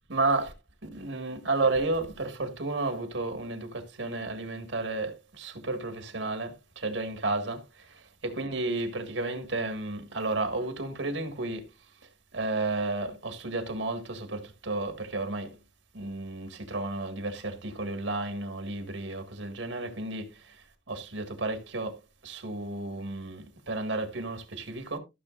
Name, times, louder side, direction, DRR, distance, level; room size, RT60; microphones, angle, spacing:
voice 1, 0.1-0.5 0.8-11.7 12.3-15.6 15.9-25.0, right 2 dB, 90° right, 1.8 m, -32 dB
14.5 x 6.6 x 2.5 m
head